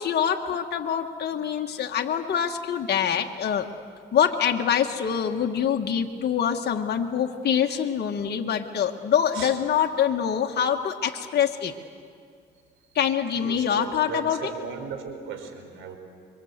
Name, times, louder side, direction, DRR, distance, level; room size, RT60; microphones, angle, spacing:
voice 1, 0.0-3.7 4.1-11.7 12.9-14.5, left 8 dB, 55° left, 2 dB, 1.5 m, -25 dB
voice 2, 13.4-16.0, right 6 dB, 85° right, 5 dB, 4.3 m, -37 dB
26.0 x 23.5 x 8.1 m, 2.2 s
cardioid pair, 90°, 20 cm